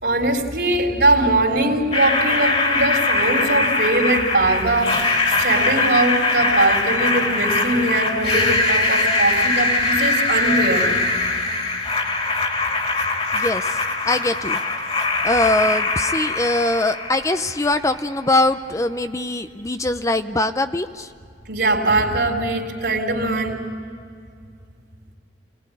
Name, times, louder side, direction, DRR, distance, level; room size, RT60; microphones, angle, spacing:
voice 1, 0.0-5.0 5.3-10.9 21.5-23.6, right 2 dB, 65° right, 1 dB, 3.8 m, -21 dB
sound 1, 1.9-17.9, left 3 dB, 35° left, 2.8 m, -22 dB
voice 2, 13.3-13.6 14.1-14.6 15.2-21.1, left 2 dB, 15° left, 9 dB, 0.6 m, -22 dB
26.5 x 19.5 x 9.9 m, 2.3 s
head